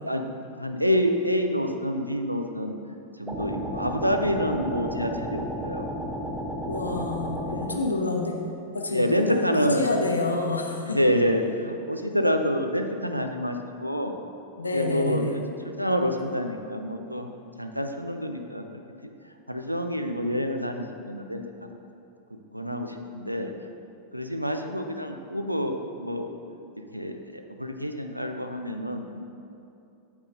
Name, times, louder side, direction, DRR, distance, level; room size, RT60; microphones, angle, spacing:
voice 1, 0.0-2.8 3.2-5.8 6.9-7.0 7.5-7.7 8.9-9.8 10.8-14.2 14.7-15.4 15.8-17.3 17.6-18.6 19.5-21.4 22.5-23.5 24.1-26.3 26.8-29.2, equal, 90° right, 5 dB, 0.5 m, -27 dB
sound 1, 3.3-7.7, equal, 10° right, 0.9 m, -33 dB
voice 2, 6.7-8.4 8.7-11.0 14.6-15.4, left 2 dB, 80° left, 2 dB, 0.8 m, -28 dB
8.3 x 8.2 x 2.6 m, 2.6 s
figure-of-eight pair, 90°, 0 cm